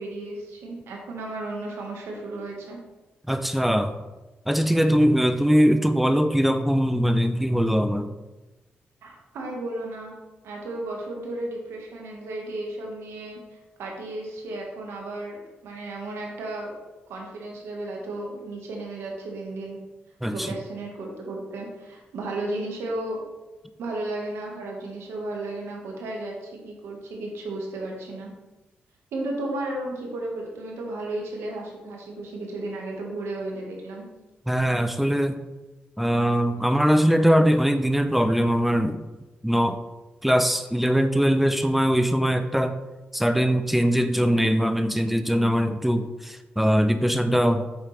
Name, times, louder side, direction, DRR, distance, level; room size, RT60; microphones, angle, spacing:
voice 1, 0.0-2.8 9.0-10.2 10.4-16.7 17.1-19.8 20.3-23.2 23.8-28.3 29.1-34.0, right 2 dB, 85° right, -1 dB, 1.5 m, -34 dB
voice 2, 3.3-3.9 4.5-8.1 20.2-20.5 34.5-35.4 36.0-39.0 39.4-39.8 40.2-42.8 43.1-47.7, equal, 5° right, 9 dB, 0.6 m, -21 dB
7.0 x 5.6 x 3.3 m, 1.1 s
supercardioid pair, 55°, 4 cm